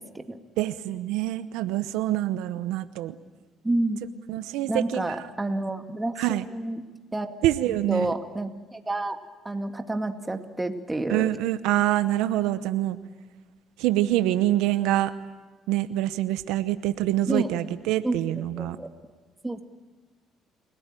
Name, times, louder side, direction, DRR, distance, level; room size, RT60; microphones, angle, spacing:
voice 1, 0.0-0.4 3.6-4.0 4.7-6.8 7.1-7.4 7.9-9.2 9.4-11.3 17.3-17.5 18.0-18.2 18.6-18.9 19.4-19.6, right 2 dB, 15° right, 6 dB, 2.1 m, -29 dB
voice 2, 0.6-3.2 4.3-5.0 6.2-6.4 7.4-8.1 11.1-13.0 13.8-15.1 15.7-18.8, right 14 dB, 90° right, 12 dB, 0.9 m, -25 dB
29.0 x 18.5 x 9.0 m, 1.3 s
cardioid pair, 95°, 0 cm